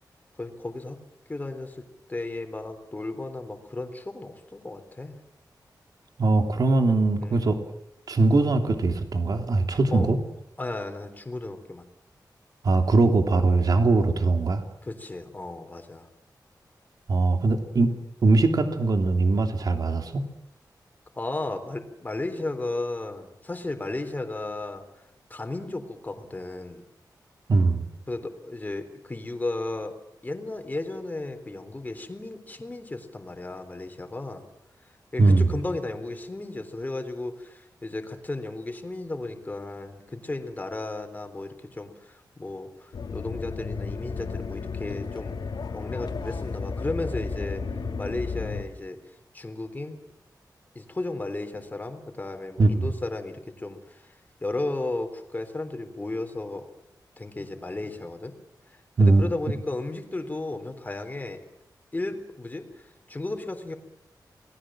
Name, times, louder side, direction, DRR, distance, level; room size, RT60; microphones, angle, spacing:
voice 1, 0.4-1.0 1.3-1.8 2.1-5.2 7.2-7.5 9.9-10.1 10.6-11.9 14.8-16.1 21.2-24.8 25.3-26.8 28.1-29.9 30.2-34.4 35.1-45.3 45.7-47.6 48.0-49.0 49.3-50.0 50.8-54.1 54.4-56.6 57.2-58.3 59.0-61.4 61.9-63.7, left 2 dB, 25° left, 6 dB, 3.7 m, -34 dB
voice 2, 6.2-7.6 8.1-10.2 12.6-14.6 17.1-17.9 18.2-20.2 27.5-27.8 35.2-35.5 52.6-52.9 59.0-59.2, right 3 dB, 60° right, 5 dB, 3.1 m, -21 dB
sound 1, 42.9-48.6, left 4 dB, 75° left, 2.7 m, -33 dB
29.0 x 20.0 x 7.6 m, 0.84 s
wide cardioid pair, 135°, 7 cm